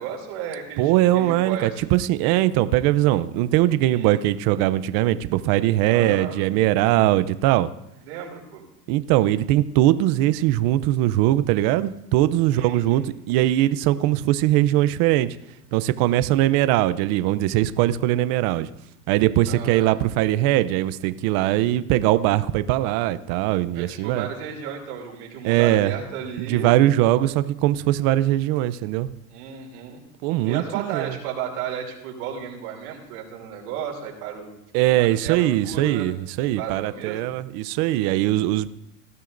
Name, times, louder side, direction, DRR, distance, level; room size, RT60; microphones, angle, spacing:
voice 1, 0.0-2.0 3.9-4.1 5.9-6.4 8.1-8.6 12.5-13.1 19.5-19.9 23.7-26.7 29.3-30.0 30.4-34.5 34.8-36.1 36.6-37.4, right 8 dB, 75° right, 0 dB, 2.9 m, -34 dB
voice 2, 0.8-7.7 8.9-15.4 15.7-18.7 19.1-24.3 25.4-25.9 26.4-29.1 30.2-31.1 34.7-38.7, right 14 dB, 50° right, 14 dB, 0.6 m, -21 dB
19.5 x 12.5 x 2.6 m, 0.82 s
supercardioid pair, 130°, 45 cm